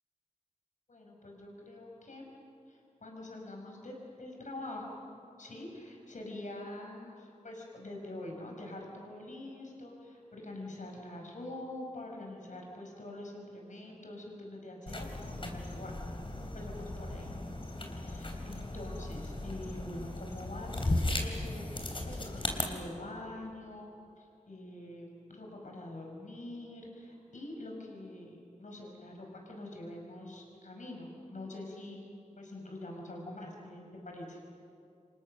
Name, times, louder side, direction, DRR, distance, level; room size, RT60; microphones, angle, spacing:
voice 1, 0.9-2.3 2.7-5.0 5.4-15.9 16.4-17.3 17.8-32.1 32.4-34.4, left 1 dB, 70° left, 0 dB, 5.7 m, -45 dB
sound 1, 14.9-22.6, left 2 dB, 40° left, 3.4 m, -36 dB
29.5 x 26.0 x 6.5 m, 2.5 s
wide cardioid pair, 75°, 13 cm